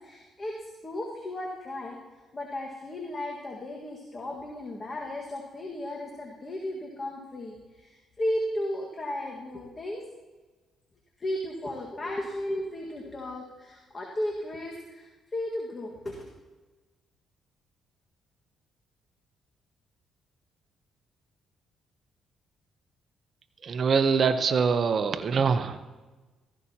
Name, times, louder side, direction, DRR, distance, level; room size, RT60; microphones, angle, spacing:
voice 1, 0.0-2.0 2.3-10.0 11.2-16.3, left 1 dB, 30° left, -1 dB, 1.7 m, -35 dB
voice 2, 23.6-25.8, right 5 dB, 50° right, 8 dB, 0.8 m, -24 dB
15.5 x 14.5 x 2.9 m, 1.2 s
cardioid pair, 90°, 0 cm